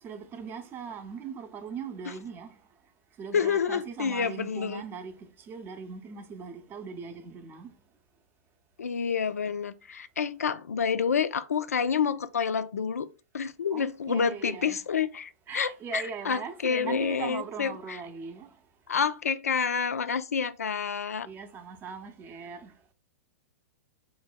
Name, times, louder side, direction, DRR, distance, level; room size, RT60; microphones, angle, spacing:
voice 1, 0.0-2.6 3.2-7.7 13.7-14.8 15.5-18.6 21.2-22.7, right 6 dB, 25° right, 0.6 m, -40 dB
voice 2, 3.3-4.8 8.8-13.1 13.3-18.0 18.9-21.3, left 6 dB, 80° left, 0.4 m, -28 dB
3.7 x 2.2 x 4.3 m
figure-of-eight pair, 105°, 8 cm